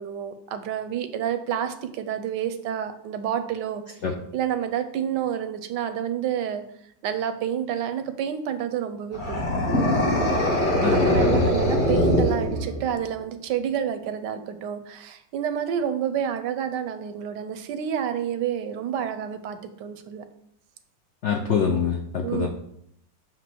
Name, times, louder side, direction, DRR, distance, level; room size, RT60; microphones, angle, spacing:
voice 1, 0.0-4.0 4.3-6.6 7.0-9.7 11.1-20.2 22.2-22.5, right 9 dB, 75° right, 9 dB, 1.2 m, -29 dB
sound 1, 9.1-13.0, left 1 dB, 30° left, 1.1 m, -22 dB
voice 2, 10.8-11.5 21.2-22.5, left 6 dB, 75° left, 3 dB, 0.6 m, -25 dB
7.5 x 2.8 x 6.0 m, 0.72 s
omnidirectional pair, 2.0 m